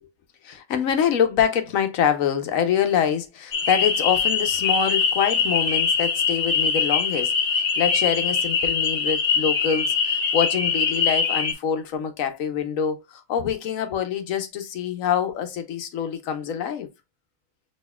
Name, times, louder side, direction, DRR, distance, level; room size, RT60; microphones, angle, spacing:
voice 1, 0.4-16.9, left 8 dB, 85° left, 1.1 m, -25 dB
sound 1, 3.5-11.5, left 6 dB, 60° left, 1.0 m, -23 dB
6.3 x 2.8 x 2.2 m
omnidirectional pair, 1.4 m